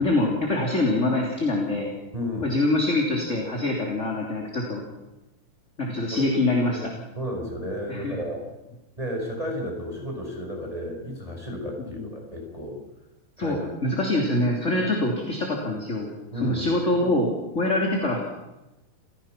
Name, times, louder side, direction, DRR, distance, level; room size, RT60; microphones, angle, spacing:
voice 1, 0.0-1.9 2.4-4.8 5.8-6.8 7.9-8.3 12.0-12.1 13.4-13.6 13.8-16.1 16.3-18.2, left 2 dB, 20° left, -1 dB, 3.1 m, -24 dB
voice 2, 2.1-2.6 6.7-6.9 7.2-8.4 9.0-12.8 13.4-13.6 16.3-16.7, left 1 dB, 10° right, 0 dB, 5.3 m, -32 dB
29.0 x 17.0 x 6.0 m, 1.0 s
omnidirectional pair, 4.2 m